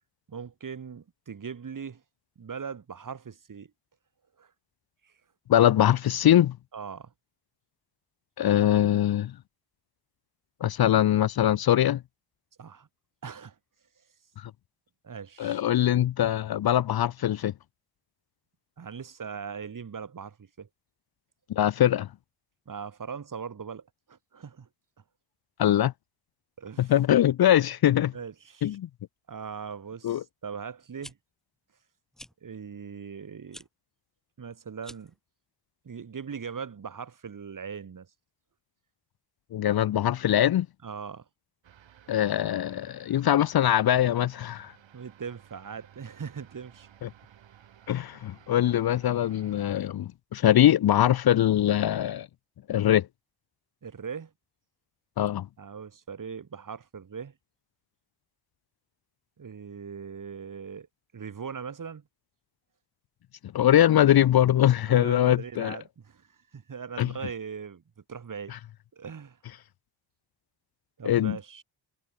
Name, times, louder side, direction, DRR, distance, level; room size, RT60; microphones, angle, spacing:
voice 1, 0.3-2.0 2.4-3.7 4.4-4.5 5.0-5.1 6.7-7.1 12.6-12.9 13.2-13.5 15.0-15.6 18.8-20.7 22.7-24.7 26.6-26.9 28.1-28.8 29.3-31.2 32.4-33.7 34.4-35.1 35.8-38.1 40.8-41.2 44.9-46.9 53.8-54.3 55.6-57.3 59.4-60.9 61.1-62.0 64.8-66.3 66.5-67.8 68.1-68.5 68.9-69.4 71.0-71.6, right 6 dB, 45° right, 3.3 m, -40 dB
voice 2, 5.5-6.6 8.4-9.3 10.6-12.0 15.4-17.5 21.5-22.1 25.6-25.9 26.8-28.1 28.6-28.9 30.0-30.2 39.5-40.7 42.1-44.7 47.0-47.1 47.9-52.3 52.7-53.1 55.2-55.5 63.5-65.8 67.0-67.1 71.0-71.4, left 11 dB, 55° left, 0.7 m, -22 dB
sound 1, 30.8-31.1 32.1-32.3 33.5-33.7 34.8-35.2, equal, ahead, 3.4 m, -47 dB
sound 2, 41.6-49.7, right 10 dB, 75° right, 7.3 m, -56 dB
cardioid pair, 100°, 46 cm